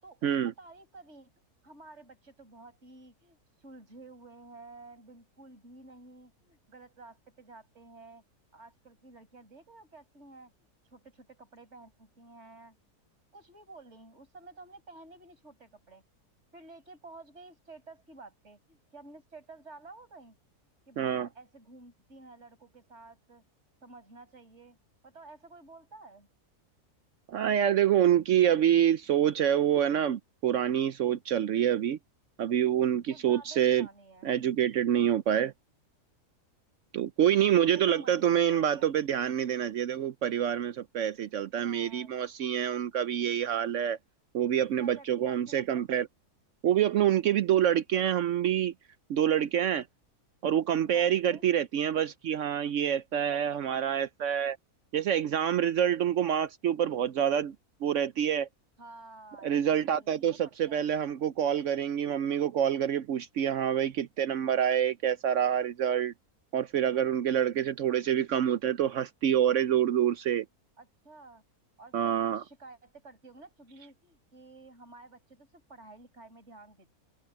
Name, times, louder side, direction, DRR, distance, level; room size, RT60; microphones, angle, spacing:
voice 1, 0.0-1.3 1.6-8.2 8.5-10.5 10.9-12.8 13.3-16.0 16.5-20.3 20.9-23.4 23.8-24.8 25.0-26.3 33.1-34.3 37.7-38.9 41.5-42.2 44.8-45.9 50.7-51.4 53.1-53.8 58.8-60.9 70.8-71.4 71.8-77.0, right 3 dB, 45° right, 6.2 m, -52 dB
voice 2, 21.0-21.3 27.3-32.0 32.4-33.9 34.2-35.5 36.9-44.0 44.3-46.1 46.6-48.7 49.1-49.8 50.4-54.6 54.9-57.5 57.8-58.5 59.4-66.1 66.5-70.4 71.9-72.4, right 10 dB, 65° right, 0.8 m, -27 dB
open air
omnidirectional pair, 1.6 m